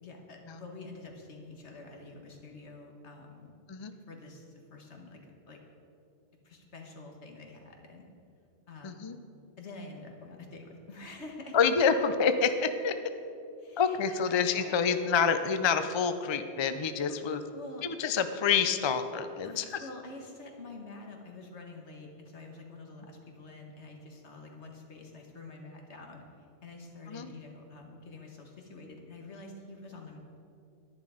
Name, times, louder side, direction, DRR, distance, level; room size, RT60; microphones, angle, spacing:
voice 1, 0.0-3.5 4.1-5.2 5.5-5.6 6.4-8.0 8.7-9.0 9.6-11.6 13.6-14.7 17.1-17.8 19.4-30.2, left 2 dB, 85° left, 2 dB, 1.8 m, -47 dB
voice 2, 8.8-9.2 11.5-12.9 13.8-17.4 17.8-19.8 27.1-27.3, left 6 dB, 35° left, 9 dB, 0.4 m, -27 dB
11.0 x 10.5 x 5.0 m, 2.5 s
omnidirectional pair, 1.1 m